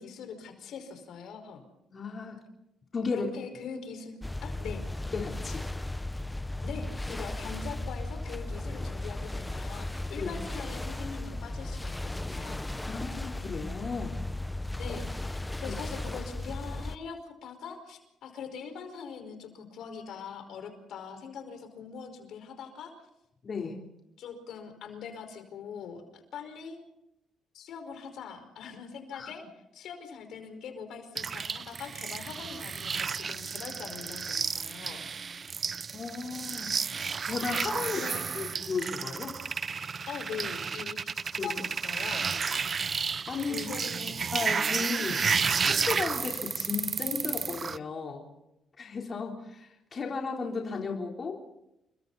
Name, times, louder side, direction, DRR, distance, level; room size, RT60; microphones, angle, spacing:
voice 1, 0.0-1.6 3.1-4.8 6.6-12.6 14.7-22.9 24.2-26.8 27.5-29.4 29.7-35.0 37.9-38.2 40.1-42.6 43.5-44.1, left 6 dB, 75° left, 6 dB, 5.1 m, -42 dB
voice 2, 1.9-2.4 2.9-3.3 5.1-5.7 10.2-10.3 12.8-14.2 15.6-15.7 23.4-23.8 29.1-29.3 35.9-36.7 37.3-38.0 38.3-39.3 41.4-41.5 43.3-43.7 44.3-45.2 45.6-48.3 48.8-51.5, left 4 dB, 40° left, 0 dB, 3.8 m, -34 dB
sound 1, 4.2-17.0, left 2 dB, 10° left, 0.9 m, -36 dB
sound 2, 31.2-47.8, right 5 dB, 40° right, 0.7 m, -32 dB
29.5 x 23.5 x 4.2 m, 0.87 s
cardioid pair, 90°, 0 cm